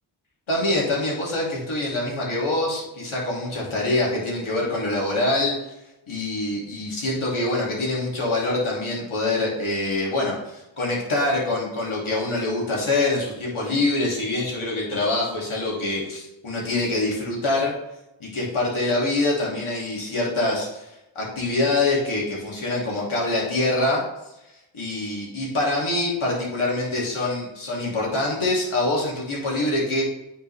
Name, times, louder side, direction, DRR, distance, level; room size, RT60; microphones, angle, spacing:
voice 1, 0.5-5.6 6.1-17.7 18.2-24.0 24.7-30.0, left 2 dB, 80° left, -4 dB, 2.5 m, -25 dB
10.0 x 4.5 x 3.3 m, 0.91 s
cardioid pair, 45°, 48 cm